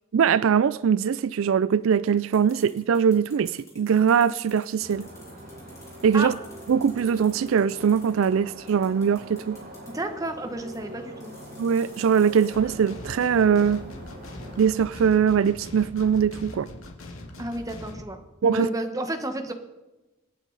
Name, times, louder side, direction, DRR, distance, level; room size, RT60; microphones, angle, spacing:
voice 1, 0.1-5.0 6.0-6.3 6.7-9.6 11.6-13.8 14.6-16.7 18.4-18.7, right 7 dB, 75° right, 17 dB, 0.4 m, -22 dB
sound 1, 2.3-8.3 8.7-9.9 10.7-10.8 11.2-12.5, left 2 dB, 15° left, 3.7 m, -52 dB
sound 2, 4.8-14.7, left 1 dB, 45° right, 4.1 m, -43 dB
voice 2, 9.9-11.3 17.4-19.5, right 1 dB, 15° right, 6 dB, 1.1 m, -31 dB
sound 3, 12.5-18.0, left 1 dB, 80° left, 2.1 m, -41 dB
25.5 x 9.1 x 4.0 m, 1.1 s
head